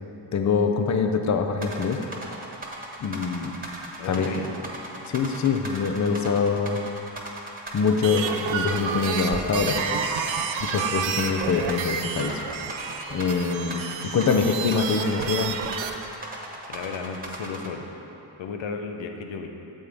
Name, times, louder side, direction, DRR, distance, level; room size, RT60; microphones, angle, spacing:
voice 1, 0.3-2.0 3.0-3.5 4.1-4.3 5.1-6.8 7.7-9.8 10.6-12.4 13.1-15.6, left 5 dB, 40° left, 5 dB, 0.6 m, -24 dB
sound 1, 1.6-17.7, right 2 dB, 20° right, 1.2 m, -37 dB
voice 2, 4.0-4.5 16.7-17.9 18.4-19.5, left 5 dB, 85° left, 4 dB, 0.8 m, -34 dB
sound 2, 7.9-15.9, right 6 dB, 85° right, 0.6 m, -30 dB
8.8 x 7.2 x 3.5 m, 3.0 s
cardioid pair, 85°, 44 cm